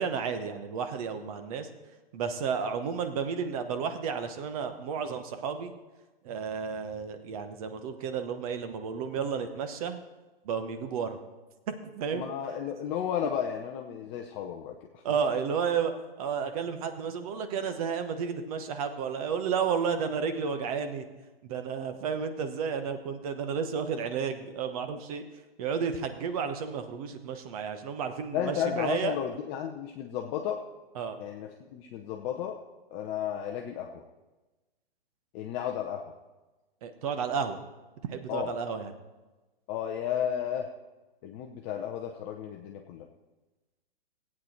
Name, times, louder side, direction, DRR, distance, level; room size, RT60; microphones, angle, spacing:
voice 1, 0.0-1.7 2.1-5.7 6.2-10.0 10.4-11.2 11.7-12.3 15.0-15.9 16.2-21.1 21.4-25.2 25.6-29.2 30.9-31.2 36.8-37.6 38.1-38.9, right 6 dB, 40° right, 8 dB, 1.1 m, -32 dB
voice 2, 12.1-15.0 28.3-30.6 31.2-32.6 32.9-34.0 35.3-36.1 38.3-38.5 39.7-40.7 41.2-43.1, left 9 dB, 25° left, 2 dB, 0.7 m, -33 dB
16.0 x 8.7 x 4.4 m, 1.2 s
figure-of-eight pair, 120°, 30 cm